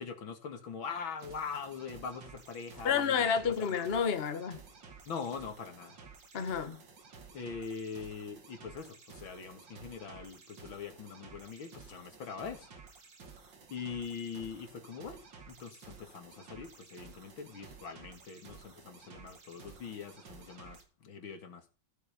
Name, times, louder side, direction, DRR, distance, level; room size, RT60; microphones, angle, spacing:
voice 1, 0.0-3.9 5.1-6.0 7.3-12.7 13.7-21.7, left 5 dB, 85° left, 2.8 m, -42 dB
sound 1, 1.2-20.8, right 5 dB, 65° right, 2.9 m, -54 dB
voice 2, 2.8-4.6 6.3-6.8, left 7 dB, 35° left, 1.4 m, -30 dB
14.5 x 8.0 x 5.2 m
omnidirectional pair, 2.2 m